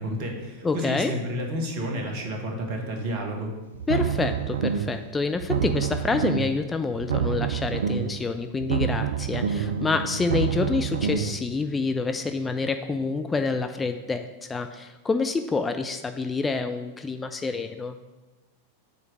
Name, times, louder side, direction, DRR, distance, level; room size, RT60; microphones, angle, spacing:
voice 1, 0.0-3.5, equal, 45° right, 2 dB, 1.4 m, -31 dB
voice 2, 0.6-1.1 3.9-18.0, left 4 dB, 15° left, 7 dB, 0.3 m, -27 dB
sound 1, 3.7-5.0 5.3-6.6 6.9-8.2 8.5-11.4, right 7 dB, 65° right, 0.4 m, -27 dB
5.5 x 4.5 x 6.3 m, 1.1 s
figure-of-eight pair, 90°, 0 cm